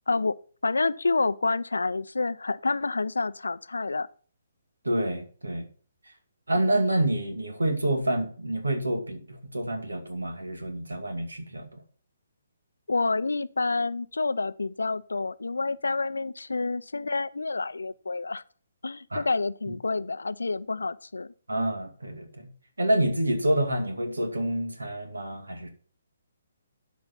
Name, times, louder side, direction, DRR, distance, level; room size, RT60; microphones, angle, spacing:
voice 1, 0.1-0.4 0.6-4.1 12.9-18.4 18.8-21.3, left 3 dB, 70° left, 0.5 m, -28 dB
voice 2, 4.8-5.7 6.5-11.8 19.1-19.2 19.7-19.8 21.5-22.5 22.8-25.7, right 1 dB, 75° right, 2.4 m, -28 dB
12.0 x 5.2 x 5.7 m
figure-of-eight pair, 135°, 0 cm